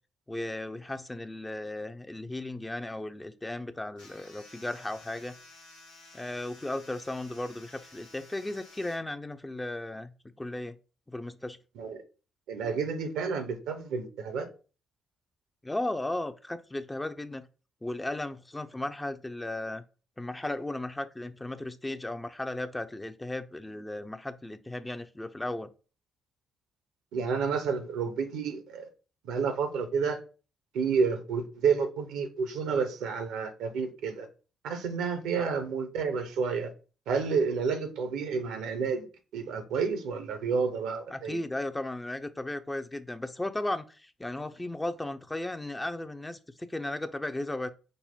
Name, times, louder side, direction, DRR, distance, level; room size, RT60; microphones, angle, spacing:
voice 1, 0.3-5.3 6.1-10.1 10.4-10.8 11.1-11.6 15.6-17.5 17.8-19.8 20.2-25.7 41.1-47.7, left 1 dB, 15° left, 0.6 m, -35 dB
sound 1, 4.0-9.0, left 2 dB, 80° left, 1.1 m, -53 dB
voice 2, 12.5-14.5 27.1-28.9 29.2-30.2 30.7-34.3 34.6-36.7 37.1-39.1 39.3-41.4, right 5 dB, 70° right, 0.8 m, -30 dB
5.3 x 2.1 x 4.3 m
hypercardioid pair, 40°, 0 cm